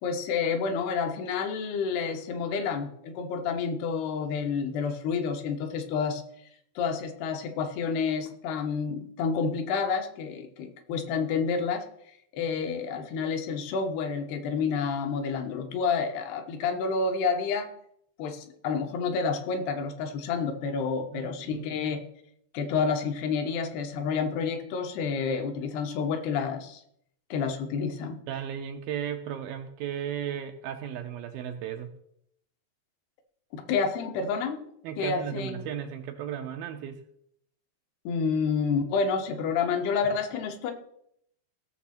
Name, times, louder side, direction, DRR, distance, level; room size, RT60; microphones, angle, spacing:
voice 1, 0.0-6.2 6.8-11.9 12.3-17.7 18.2-22.0 22.5-26.8 27.3-28.2 33.5-34.7 35.0-35.6 38.0-40.7, left 5 dB, 75° left, 6 dB, 3.0 m, -29 dB
voice 2, 21.1-21.7 28.3-31.9 34.8-37.0, right 9 dB, 80° right, 5 dB, 2.2 m, -35 dB
17.0 x 6.8 x 4.3 m, 0.72 s
omnidirectional pair, 4.7 m